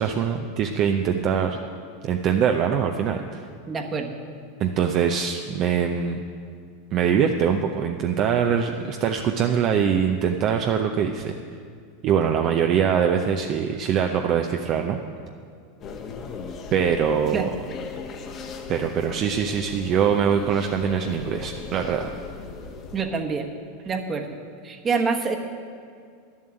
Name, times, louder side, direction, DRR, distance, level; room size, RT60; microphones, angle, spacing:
voice 1, 0.0-1.6 2.0-3.4 4.6-6.2 6.9-11.3 12.0-15.0 16.7-17.5 18.7-22.1, right 7 dB, 45° right, 4 dB, 0.6 m, -23 dB
voice 2, 3.7-4.2 17.3-17.5 22.9-23.5 23.8-24.4 24.6-25.4, right 4 dB, 25° right, 4 dB, 1.2 m, -26 dB
sound 1, 15.8-23.0, left 5 dB, 35° left, 1.2 m, -38 dB
10.5 x 7.4 x 8.9 m, 2.2 s
supercardioid pair, 125°, 0 cm